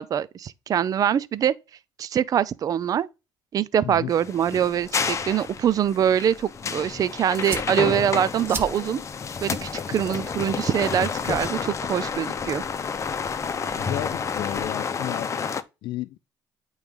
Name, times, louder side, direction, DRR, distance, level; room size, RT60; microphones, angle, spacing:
voice 1, 0.0-1.5 2.0-3.1 3.5-9.0 9.4-12.6, right 9 dB, 45° right, 0.5 m, -24 dB
sound 1, 4.1-15.6, left 6 dB, 35° left, 0.8 m, -30 dB
sound 2, 4.3-14.6, right 3 dB, 30° right, 1.9 m, -43 dB
voice 2, 13.7-15.3 15.8-16.2, left 14 dB, 70° left, 0.5 m, -32 dB
8.7 x 3.2 x 5.3 m
supercardioid pair, 85°, 9 cm